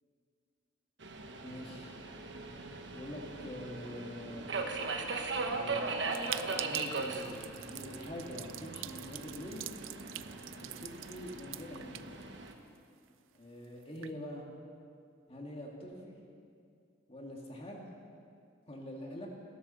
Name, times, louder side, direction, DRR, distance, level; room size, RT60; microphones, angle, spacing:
Subway metro underground, 1.0-12.5, right 3 dB, 65° right, 1.3 m, -39 dB
voice 1, 1.4-1.9 2.9-4.4 5.4-9.7 10.6-12.1 13.3-14.5 15.3-16.2 17.1-17.9 18.7-19.3, left 1 dB, 30° left, -1 dB, 1.9 m, -45 dB
sound 1, 6.1-12.8 13.1-13.2 13.3-13.4 13.8-14.1, right 14 dB, 90° right, 0.5 m, -45 dB
17.5 x 11.0 x 6.8 m, 2.4 s
head